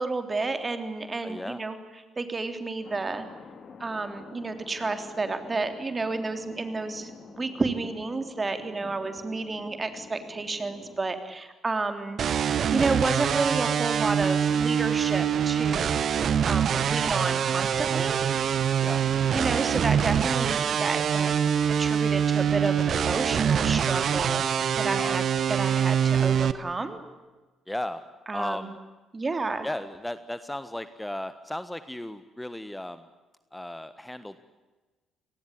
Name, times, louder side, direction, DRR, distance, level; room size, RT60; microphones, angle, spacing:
voice 1, 0.0-1.8 2.2-3.3 3.8-12.2 12.5-18.2 19.3-21.3 21.8-25.2 25.5-27.0 28.3-28.7 29.1-29.7, right 3 dB, 30° right, 8 dB, 3.5 m, -31 dB
voice 2, 1.2-1.6 18.8-19.0 24.9-25.2 27.7-28.0 28.3-28.8 29.6-33.0 33.5-34.4, left 1 dB, 10° left, 12 dB, 1.4 m, -35 dB
Thunder, 2.8-11.0, left 5 dB, 50° left, 3.2 m, -47 dB
sound 1, 12.2-26.5, right 8 dB, 55° right, 1.1 m, -24 dB
28.0 x 19.5 x 10.0 m, 1.2 s
hypercardioid pair, 45°, 0 cm